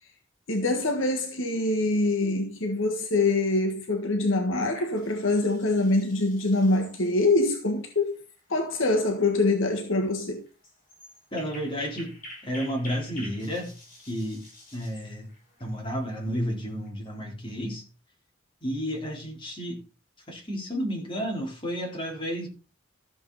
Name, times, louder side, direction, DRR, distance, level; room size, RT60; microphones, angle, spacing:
voice 1, 0.5-8.2 8.5-10.4, left 2 dB, 65° left, 1.5 m, -24 dB
sound 1, 4.5-16.9, left 1 dB, 40° left, 6.6 m, -49 dB
voice 2, 11.3-12.1 12.4-13.8 14.1-14.4 14.7-15.3 15.6-17.9 18.6-19.8 20.3-22.5, equal, 25° left, 3.9 m, -31 dB
14.0 x 7.2 x 4.1 m
head